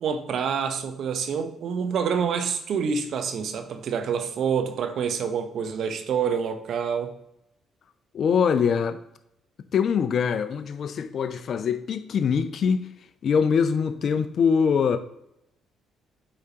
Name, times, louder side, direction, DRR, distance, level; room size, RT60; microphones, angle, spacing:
voice 1, 0.0-7.2, right 6 dB, 65° right, 0.8 m, -27 dB
voice 2, 8.1-9.0 9.7-12.9 13.2-15.0, left 6 dB, 55° left, 0.6 m, -23 dB
8.4 x 4.8 x 2.9 m
hypercardioid pair, 50°, 0 cm